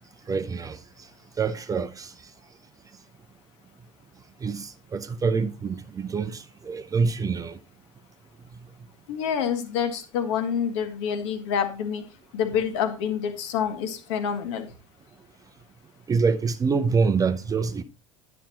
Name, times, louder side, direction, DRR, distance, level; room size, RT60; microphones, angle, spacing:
voice 1, 0.3-0.8 1.4-2.1 4.4-7.6 16.1-17.8, right 5 dB, 20° right, 0.6 m, -26 dB
voice 2, 9.1-12.0 12.3-14.7, left 7 dB, 60° left, 1.5 m, -27 dB
10.0 x 6.8 x 2.9 m
figure-of-eight pair, 75°, 17 cm